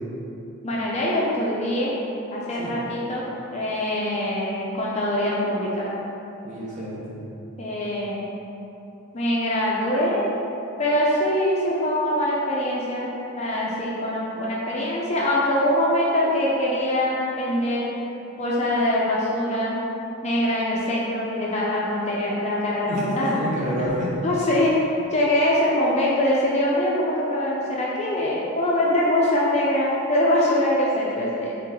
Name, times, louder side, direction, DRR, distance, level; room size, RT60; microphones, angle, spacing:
voice 1, 0.6-1.9 2.3-3.2 3.5-5.9 7.6-8.3 9.1-10.3 10.8-17.9 18.4-19.8 20.2-23.3 24.2-24.8 25.1-31.5, left 1 dB, 30° left, -5 dB, 0.4 m, -23 dB
voice 2, 6.4-7.2 22.9-24.2, equal, 35° right, -8 dB, 0.9 m, -28 dB
3.8 x 3.0 x 3.6 m, 3.0 s
head